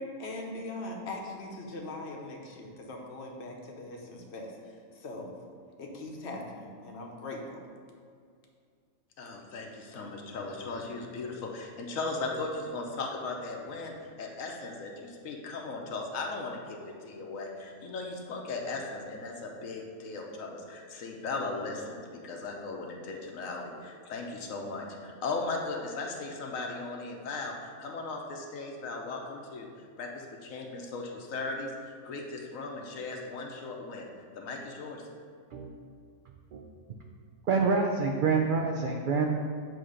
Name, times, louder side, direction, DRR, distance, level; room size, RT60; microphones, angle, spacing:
voice 1, 0.0-5.3 5.8-7.6, left 2 dB, 60° left, 0 dB, 1.0 m, -41 dB
voice 2, 9.2-29.7 30.0-31.7 32.0-34.1 34.3-35.1, left 3 dB, 80° left, 1 dB, 1.2 m, -37 dB
voice 3, 37.5-39.4, right 4 dB, 75° right, 1 dB, 0.4 m, -27 dB
7.8 x 2.8 x 4.9 m, 2.2 s
omnidirectional pair, 1.4 m